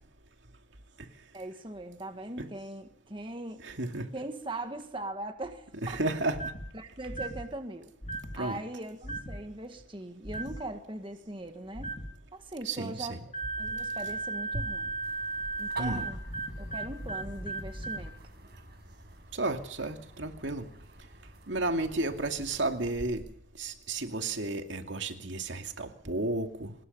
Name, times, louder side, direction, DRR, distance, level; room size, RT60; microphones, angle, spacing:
voice 1, 1.3-3.6 4.1-6.0 6.7-7.9 8.4-12.0 12.3-13.2 13.6-14.9 15.6-16.2 16.6-18.2, right 1 dB, 25° right, 6 dB, 1.8 m, -40 dB
voice 2, 3.6-4.1 5.8-6.4 8.4-8.6 12.6-13.2 15.8-16.1 19.3-20.7 21.5-23.2 23.6-26.7, right 2 dB, 75° right, 5 dB, 2.5 m, -32 dB
sound 1, 6.3-6.7 7.1-7.5 8.0-8.4 9.0-9.4 10.2-10.6 11.7-12.1 13.3-18.1, right 2 dB, 30° left, 2.4 m, -36 dB
sound 2, 15.0-22.9, right 2 dB, 55° right, 6.8 m, -49 dB
26.0 x 20.5 x 5.6 m, 0.68 s
head